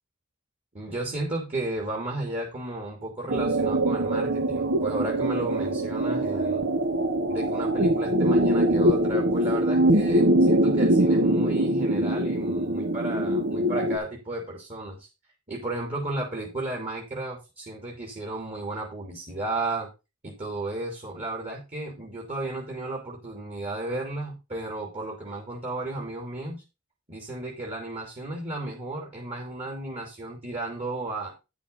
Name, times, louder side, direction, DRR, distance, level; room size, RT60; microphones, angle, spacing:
voice 1, 0.7-6.6 7.3-15.1 15.5-19.9 20.2-26.6 27.1-31.3, right 2 dB, 30° right, -1 dB, 2.9 m, -34 dB
sound 1, 3.3-14.0, right 1 dB, 50° right, 1.2 m, -23 dB
10.0 x 7.0 x 4.0 m, 0.26 s
head